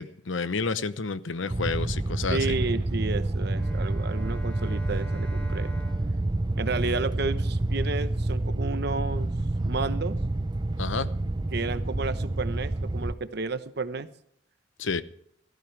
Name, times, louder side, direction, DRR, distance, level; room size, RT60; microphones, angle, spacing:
voice 1, 0.0-2.6 10.8-11.1 14.8-15.0, left 4 dB, 85° left, 13 dB, 0.8 m, -30 dB
sound 1, 1.5-13.1, right 2 dB, 25° right, 0.5 m, -28 dB
voice 2, 2.3-5.7 6.6-9.3 9.6-10.2 11.5-14.1, right 3 dB, 60° right, 12 dB, 0.9 m, -32 dB
Bowed string instrument, 3.5-7.8, right 2 dB, 10° left, 3.3 m, -45 dB
17.0 x 14.0 x 3.3 m, 0.69 s
head